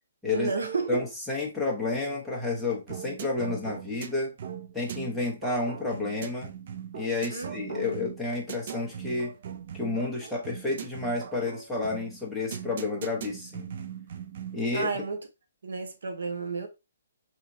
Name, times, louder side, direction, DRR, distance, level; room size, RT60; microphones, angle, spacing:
voice 1, 0.3-1.1 7.3-8.0 14.7-15.2 15.6-16.7, right 4 dB, 80° right, 0.9 m, -32 dB
voice 2, 0.9-4.3 4.7-6.5 6.9-9.3 9.7-13.7 14.5-14.9, left 3 dB, ahead, 0.7 m, -30 dB
sound 1, 2.9-14.7, right 8 dB, 40° right, 0.4 m, -40 dB
3.6 x 2.8 x 2.6 m
hypercardioid pair, 170°, 0 cm